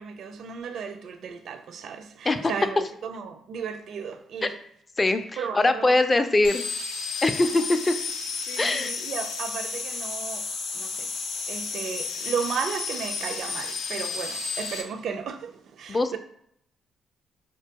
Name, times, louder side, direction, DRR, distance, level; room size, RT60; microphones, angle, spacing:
voice 1, 0.0-4.6 5.4-6.3 7.4-7.6 8.5-11.1 11.5-16.2, right 6 dB, 65° right, 0.4 m, -35 dB
voice 2, 5.5-6.6 7.2-7.9 8.6-8.9 15.9-16.2, left 2 dB, 25° left, 0.3 m, -22 dB
sound 1, 6.4-14.8, left 4 dB, 85° left, 0.5 m, -32 dB
4.3 x 2.2 x 2.8 m
cardioid pair, 90°, 0 cm